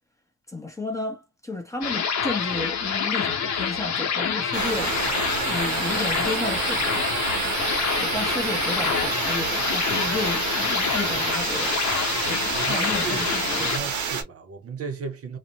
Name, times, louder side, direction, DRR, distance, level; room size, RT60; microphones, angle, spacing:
voice 1, 0.5-5.0 5.4-7.0 8.0-11.8 12.3-13.7, left 2 dB, 10° left, 0.6 m, -32 dB
sound 1, 1.8-13.8, left 7 dB, 75° left, 0.8 m, -27 dB
sound 2, 4.5-14.2, right 6 dB, 85° right, 0.9 m, -28 dB
voice 2, 12.1-15.4, right 6 dB, 55° right, 0.7 m, -36 dB
2.5 x 2.1 x 2.7 m
wide cardioid pair, 165°, 29 cm